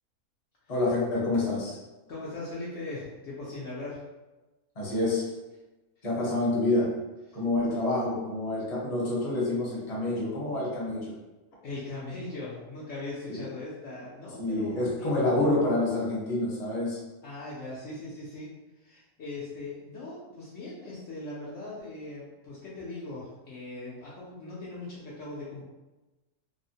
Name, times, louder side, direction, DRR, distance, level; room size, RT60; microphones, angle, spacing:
voice 1, 0.7-1.8 4.8-5.3 6.0-6.9 7.3-11.1 13.3-13.4 14.4-17.0, left 2 dB, 35° left, -6 dB, 0.8 m, -27 dB
voice 2, 2.1-4.0 7.3-7.4 11.6-15.1 17.2-18.5 18.8-25.6, left 2 dB, 65° left, -7 dB, 0.9 m, -39 dB
3.4 x 2.1 x 2.7 m, 1.1 s
omnidirectional pair, 1.6 m